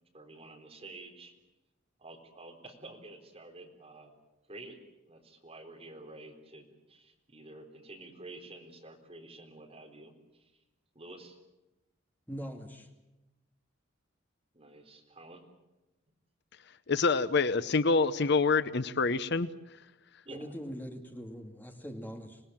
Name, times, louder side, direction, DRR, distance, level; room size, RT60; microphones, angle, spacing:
voice 1, 0.1-1.3 2.0-4.1 4.5-4.8 5.0-10.5 10.9-11.4 14.5-15.4 20.2-20.5, right 2 dB, 30° right, 3 dB, 3.9 m, -49 dB
voice 2, 12.3-12.9 20.3-22.4, equal, 10° left, 3 dB, 2.5 m, -42 dB
voice 3, 16.9-19.5, left 4 dB, 55° left, 14 dB, 0.8 m, -26 dB
26.0 x 19.5 x 8.8 m, 1.0 s
head